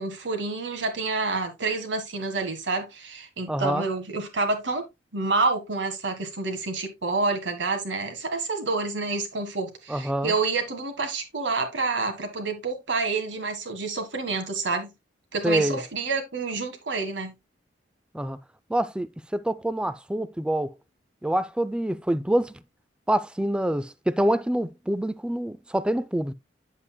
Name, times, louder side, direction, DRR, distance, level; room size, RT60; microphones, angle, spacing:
voice 1, 0.0-4.9 5.1-14.9 15.3-17.3, right 3 dB, 75° right, 1.6 m, -28 dB
voice 2, 3.5-3.8 9.9-10.3 15.4-15.8 18.1-18.4 18.7-20.8 21.2-22.5 23.1-26.3, right 1 dB, 5° right, 0.3 m, -26 dB
8.2 x 7.5 x 2.2 m
head